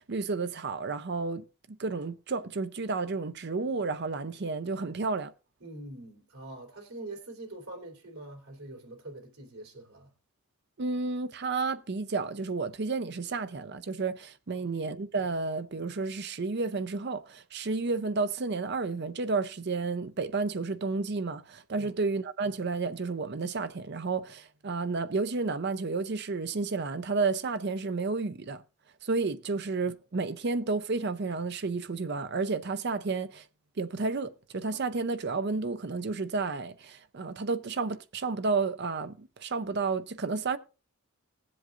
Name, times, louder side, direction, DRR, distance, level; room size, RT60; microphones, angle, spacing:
voice 1, 0.0-5.3 10.8-28.6 29.0-33.4 33.8-40.6, right 4 dB, 50° right, 0.6 m, -31 dB
voice 2, 5.6-10.1 14.5-14.7 21.7-22.0, right 2 dB, 80° right, 3.3 m, -44 dB
20.0 x 7.7 x 2.5 m
head